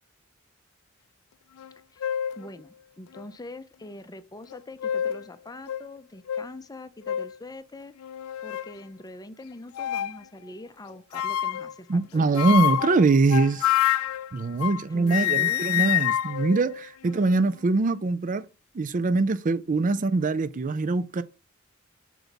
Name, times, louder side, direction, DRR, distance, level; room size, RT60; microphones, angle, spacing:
sound 1, 1.6-1.7 2.0-2.4 3.1-3.2 4.5-5.3 5.7-5.8 6.3-6.5 7.1-7.3 8.0-8.7 9.7-10.2 11.1-11.7 12.4-14.8 15.1-17.4, left 11 dB, 90° left, 0.3 m, -27 dB
voice 1, 2.4-7.9 8.4-12.2 14.9-15.6, left 1 dB, 20° left, 0.6 m, -43 dB
voice 2, 11.9-13.7 14.3-18.5 18.7-21.2, right 3 dB, 40° right, 0.4 m, -23 dB
6.7 x 4.6 x 3.9 m
head